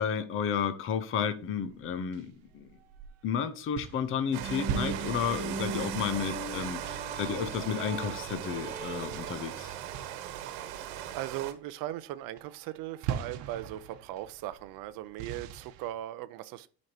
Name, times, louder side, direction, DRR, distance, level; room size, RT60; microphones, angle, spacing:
voice 1, 0.0-2.7 3.2-9.7, left 7 dB, 25° left, 0.6 m, -32 dB
sound 1, 1.6-3.3 3.7-10.8 11.0-11.5 11.8-12.1 12.3-15.9, right 9 dB, 60° right, 1.0 m, -42 dB
sound 2, 4.3-9.3, right 4 dB, 15° right, 1.1 m, -40 dB
Rain, 4.3-11.5, right 11 dB, 80° right, 1.3 m, -39 dB
voice 2, 10.4-10.9 11.1-16.7, right 14 dB, 45° right, 0.6 m, -39 dB
11.0 x 5.3 x 2.8 m
cardioid pair, 165°, 48 cm